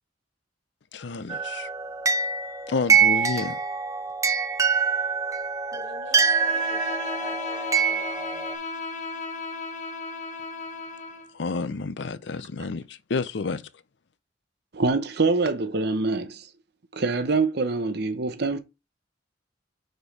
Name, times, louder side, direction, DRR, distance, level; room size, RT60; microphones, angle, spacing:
voice 1, 0.9-1.7 2.7-3.6 11.3-13.7, left 4 dB, 65° left, 0.6 m, -30 dB
sound 1, 1.3-8.5, right 6 dB, 15° right, 0.6 m, -25 dB
voice 2, 5.7-8.5, left 2 dB, 85° left, 1.9 m, -45 dB
Bowed string instrument, 6.1-11.3, left 4 dB, 40° left, 1.0 m, -35 dB
voice 3, 14.7-16.5 16.9-18.6, right 3 dB, 60° right, 0.8 m, -25 dB
5.2 x 4.4 x 4.6 m
head